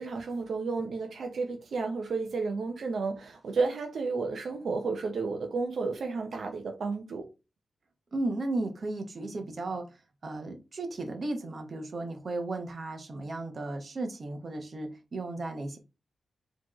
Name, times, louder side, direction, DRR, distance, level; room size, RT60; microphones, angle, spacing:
voice 1, 0.0-7.2, right 4 dB, 70° right, 0.7 m, -32 dB
voice 2, 8.1-9.9 10.2-15.8, right 2 dB, 45° right, 0.9 m, -35 dB
4.4 x 3.0 x 3.0 m
wide cardioid pair, 145°, 0 cm